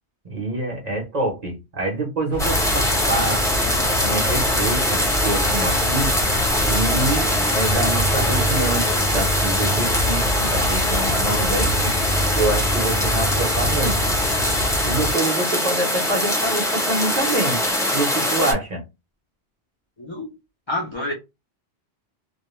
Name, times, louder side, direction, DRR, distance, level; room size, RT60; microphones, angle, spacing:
voice 1, 0.2-3.4 4.0-6.2 6.7-11.9 12.3-14.1 14.8-17.6 17.9-18.8, right 2 dB, 45° right, 0.7 m, -26 dB
sound 1, 2.3-15.1, left 1 dB, 55° left, 1.0 m, -27 dB
sound 2, 2.4-18.5, left 1 dB, 5° left, 0.7 m, -22 dB
sound 3, 6.9-14.1, right 1 dB, 80° right, 0.9 m, -31 dB
voice 2, 20.0-20.3 20.7-21.1, left 1 dB, 40° left, 0.4 m, -27 dB
2.3 x 2.1 x 3.0 m
omnidirectional pair, 1.2 m